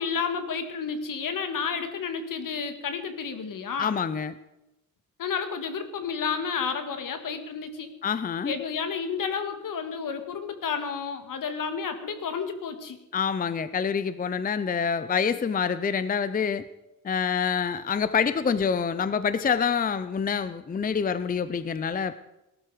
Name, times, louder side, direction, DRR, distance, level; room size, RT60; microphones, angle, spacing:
voice 1, 0.0-3.9 5.2-7.9 8.5-13.0, left 6 dB, 70° left, 8 dB, 2.0 m, -31 dB
voice 2, 3.8-4.3 8.0-8.6 13.1-16.7 17.0-22.2, left 6 dB, 25° left, 14 dB, 0.6 m, -26 dB
19.5 x 12.5 x 5.0 m, 0.95 s
wide cardioid pair, 145°, 34 cm